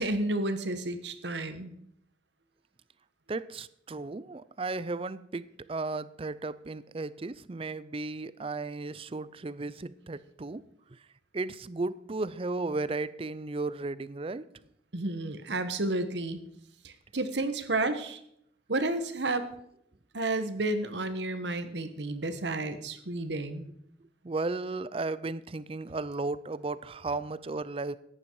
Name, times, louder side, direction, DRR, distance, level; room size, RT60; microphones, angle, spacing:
voice 1, 0.0-1.7 14.9-16.4 16.8-18.2 18.7-19.5 20.1-23.7, right 2 dB, 80° right, 9 dB, 1.3 m, -31 dB
voice 2, 3.3-10.6 10.9-11.0 11.3-14.5 24.2-28.0, right 3 dB, 30° right, 17 dB, 0.5 m, -35 dB
14.5 x 10.0 x 4.7 m, 0.72 s
head